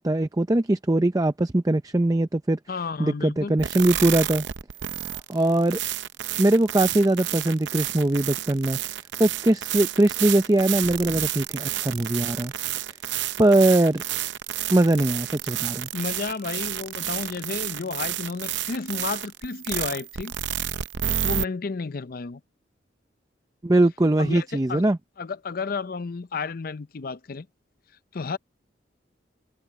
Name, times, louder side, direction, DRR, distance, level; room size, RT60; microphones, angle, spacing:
voice 1, 0.0-2.6 3.0-4.4 5.0-5.8 6.4-8.8 9.2-12.5 13.4-14.0 14.7-15.9 23.6-25.0, right 1 dB, 20° right, 0.6 m, -21 dB
voice 2, 2.7-3.6 15.9-20.3 21.2-22.4 24.2-24.8 25.2-27.5 28.1-28.4, left 4 dB, 55° left, 0.6 m, -32 dB
sound 1, 3.6-21.4, right 11 dB, 80° right, 0.7 m, -30 dB
head